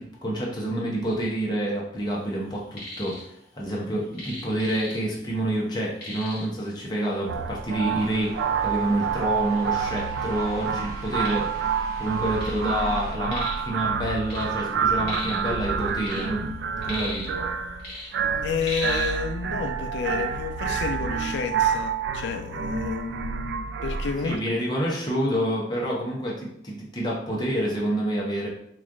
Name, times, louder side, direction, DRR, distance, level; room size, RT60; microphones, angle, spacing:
voice 1, 0.0-11.5 12.0-16.5 16.8-17.3 17.9-18.1 24.2-28.5, right 1 dB, 25° left, 0.8 m, -28 dB
sound 1, 2.5-3.2 3.5-5.3 5.6-5.7 6.0-6.6 7.4-7.5 8.0-8.1 8.9-9.0 9.2-10.1 10.6-12.6 12.9-13.7 14.0-15.5 15.9-17.5 17.8-19.1, left 1 dB, 60° left, 1.4 m, -37 dB
sound 2, 7.3-24.4, right 6 dB, 75° right, 0.3 m, -28 dB
sound 3, 7.9-13.2, right 1 dB, 20° right, 0.8 m, -46 dB
voice 2, 18.4-24.4, left 6 dB, 80° left, 0.4 m, -30 dB
3.1 x 2.4 x 3.7 m
head